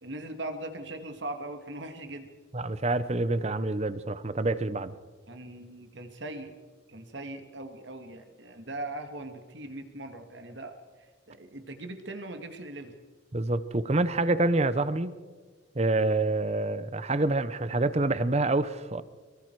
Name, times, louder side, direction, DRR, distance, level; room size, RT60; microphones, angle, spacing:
voice 1, 0.0-2.3 5.3-6.5 6.9-10.7 11.3-12.9, right 2 dB, 65° right, 6 dB, 2.2 m, -40 dB
voice 2, 2.5-4.9 13.3-15.1 15.7-19.0, right 2 dB, 35° right, 14 dB, 0.8 m, -27 dB
23.5 x 23.0 x 4.8 m, 1.4 s
head